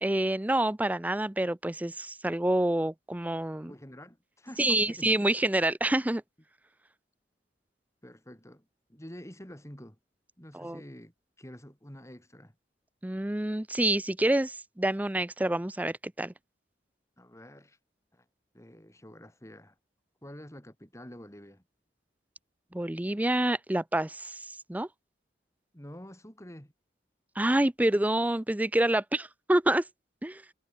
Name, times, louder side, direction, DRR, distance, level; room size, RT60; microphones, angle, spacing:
voice 1, 0.0-3.7 4.6-6.2 10.5-10.8 13.0-16.3 22.7-24.9 27.4-29.8 30.2-30.4, right 1 dB, 10° right, 0.5 m, -27 dB
voice 2, 3.6-5.1 8.0-10.0 10.4-12.6 17.2-17.8 18.1-18.3 18.5-19.7 20.2-21.6 25.7-26.7, equal, 15° left, 7.5 m, -48 dB
head